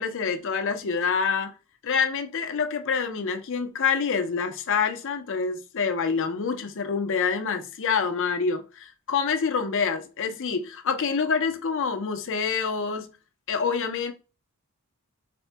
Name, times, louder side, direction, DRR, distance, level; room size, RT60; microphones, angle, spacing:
voice 1, 0.0-1.5 1.8-13.2 13.5-14.1, left 5 dB, 60° left, 0.6 m, -26 dB
4.2 x 2.1 x 2.8 m
head